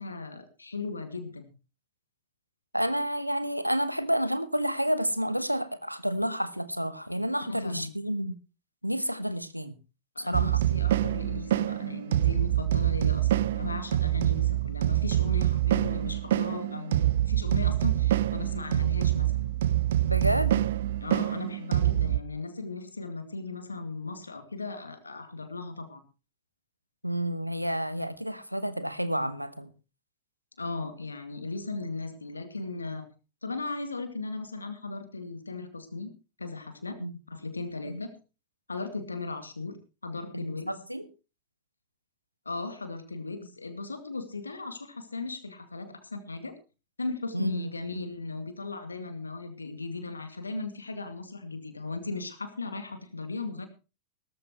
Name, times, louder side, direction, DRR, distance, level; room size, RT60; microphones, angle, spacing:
voice 1, 0.0-1.5 7.5-7.9 10.2-19.5 21.0-26.0 30.6-33.1 33.4-36.1 36.4-37.0 37.3-38.2 38.7-39.8 40.0-40.8 42.5-46.5 47.0-53.7, left 3 dB, 80° left, 9 dB, 2.2 m, -37 dB
voice 2, 2.7-8.4 8.8-9.7 10.3-10.6 20.0-20.6 27.0-29.7 37.0-37.2 37.8-38.0 40.3-41.1 47.3-47.7, equal, 90° right, 14 dB, 1.1 m, -30 dB
sound 1, 10.3-22.2, right 13 dB, 60° right, 0.7 m, -26 dB
17.5 x 14.0 x 3.1 m, 0.32 s
figure-of-eight pair, 90°, 0 cm